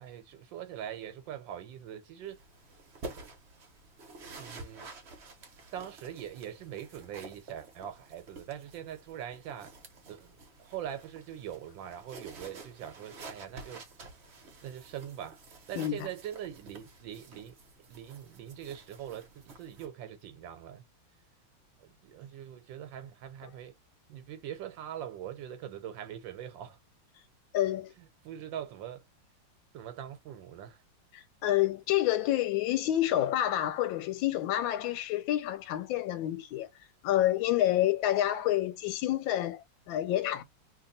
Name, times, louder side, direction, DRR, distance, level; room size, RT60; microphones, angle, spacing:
voice 1, 0.0-2.4 4.4-4.9 5.7-9.7 10.1-13.8 14.6-17.5 17.9-20.8 21.8-23.7 24.1-26.8 28.0-29.0 29.7-30.8, right 10 dB, 80° right, 1.3 m, -42 dB
sound 1, 2.2-19.9, right 3 dB, 45° right, 0.9 m, -50 dB
voice 2, 27.5-27.9 31.1-36.7 37.0-40.4, left 13 dB, 85° left, 1.4 m, -28 dB
2.9 x 2.8 x 3.8 m
omnidirectional pair, 2.1 m